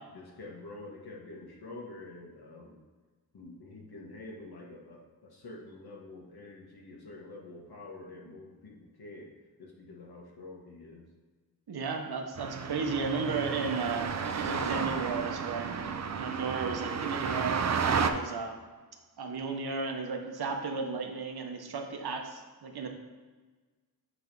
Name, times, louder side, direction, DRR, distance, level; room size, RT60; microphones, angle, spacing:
voice 1, 0.1-2.8 3.3-9.3 9.6-11.0, left 2 dB, 75° left, -2 dB, 1.5 m, -47 dB
voice 2, 11.7-15.7 16.2-18.6 19.2-22.9, right 4 dB, 75° right, 4 dB, 0.9 m, -34 dB
sound 1, 12.4-18.1, right 6 dB, 45° right, 0.5 m, -32 dB
8.4 x 3.3 x 5.3 m, 1.4 s
wide cardioid pair, 150°, 38 cm